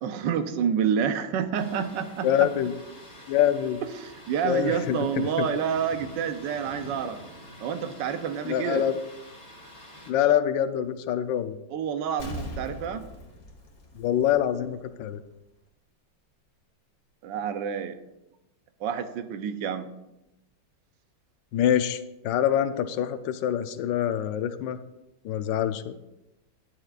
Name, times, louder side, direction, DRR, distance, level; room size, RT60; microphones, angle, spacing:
voice 1, 0.0-2.5 4.0-7.2 7.6-8.8 11.7-13.0 17.2-17.9 18.8-19.9, right 7 dB, 75° right, 9 dB, 1.3 m, -28 dB
Thunder, 1.5-10.1, equal, 20° left, 1.8 m, -47 dB
voice 2, 2.2-2.7 3.3-3.8 4.4-5.5 8.4-8.9 10.1-11.6 14.0-15.2 21.5-24.8 25.2-26.0, left 10 dB, 75° left, 10 dB, 1.3 m, -25 dB
Explosion, 12.2-14.8 15.1-15.2, left 1 dB, 45° left, 1.7 m, -40 dB
11.0 x 10.5 x 2.5 m, 0.93 s
omnidirectional pair, 2.1 m